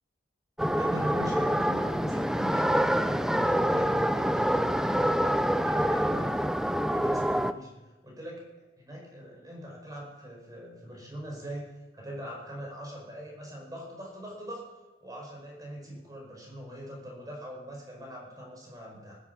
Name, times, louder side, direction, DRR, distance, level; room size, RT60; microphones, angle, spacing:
sound 1, 0.6-7.5, equal, 5° right, 0.4 m, -26 dB
voice 1, 0.8-7.7 8.0-8.4 8.8-11.7 11.9-14.6 15.0-19.2, equal, 20° right, -1 dB, 5.2 m, -41 dB
19.0 x 10.0 x 6.9 m, 1.1 s
head